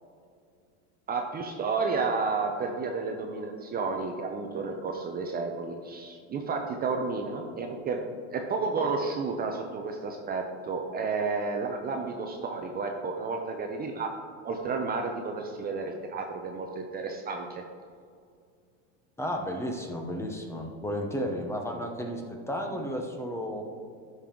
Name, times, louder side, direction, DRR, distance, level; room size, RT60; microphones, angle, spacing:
voice 1, 1.1-8.0 8.3-14.1 14.4-17.6, right 4 dB, 25° right, 3 dB, 0.6 m, -31 dB
voice 2, 19.2-23.6, equal, 5° left, 3 dB, 0.8 m, -33 dB
13.0 x 5.5 x 3.7 m, 2.2 s
supercardioid pair, 140°, 38 cm